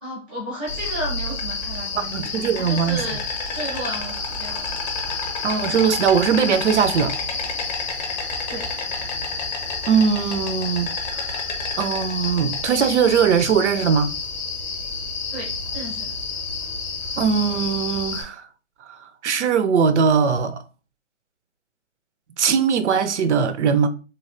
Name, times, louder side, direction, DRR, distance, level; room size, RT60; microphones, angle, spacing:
voice 1, 0.0-3.2 3.5-4.7 8.5-8.7 15.3-16.1, right 1 dB, 10° right, 0.5 m, -33 dB
Insect, 0.7-18.2, left 4 dB, 35° left, 0.7 m, -29 dB
voice 2, 2.0-3.0 5.4-7.1 9.9-10.9 11.8-14.2 17.2-18.5 19.2-20.6 22.4-23.9, right 6 dB, 65° right, 0.5 m, -20 dB
3.1 x 2.5 x 2.5 m
hypercardioid pair, 160°, 38 cm